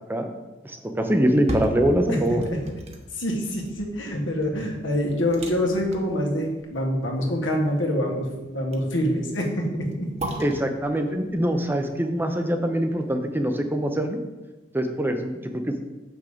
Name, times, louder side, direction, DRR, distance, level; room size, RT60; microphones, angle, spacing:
voice 1, 0.6-2.4 10.4-14.2 14.7-15.7, right 1 dB, 10° right, 5 dB, 0.6 m, -24 dB
sound 1, 1.2-13.2 13.7-13.8, right 1 dB, 35° right, 1.0 m, -38 dB
voice 2, 3.1-10.3, equal, 80° left, 0 dB, 1.7 m, -26 dB
7.2 x 6.1 x 5.0 m, 1.1 s
head